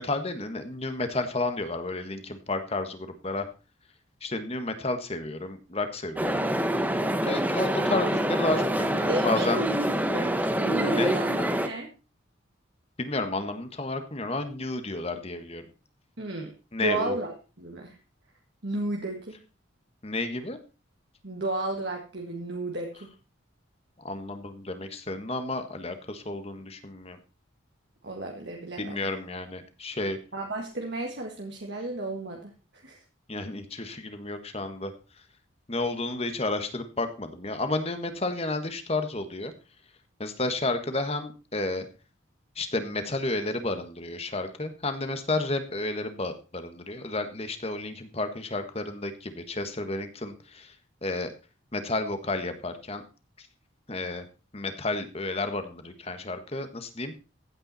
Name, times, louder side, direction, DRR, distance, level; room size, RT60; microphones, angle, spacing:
voice 1, 0.0-3.5 4.2-6.5 7.2-9.6 10.9-11.2 13.0-15.6 16.7-17.2 20.0-20.6 24.0-27.2 28.8-30.2 33.3-34.9 35.7-39.5 40.2-41.9 42.5-50.7 51.0-51.3 51.7-53.0 53.4-53.5 53.9-54.2 54.5-57.2, left 2 dB, 30° left, 8 dB, 1.5 m, -31 dB
sound 1, 6.2-11.7, right 1 dB, 10° right, 1.1 m, -26 dB
voice 2, 9.1-10.4 10.7-11.9 16.2-16.5 16.8-18.0 18.6-19.4 21.2-23.1 28.0-29.0 30.3-33.0, right 2 dB, 60° right, 1 dB, 1.8 m, -33 dB
15.5 x 9.0 x 4.3 m, 0.33 s
head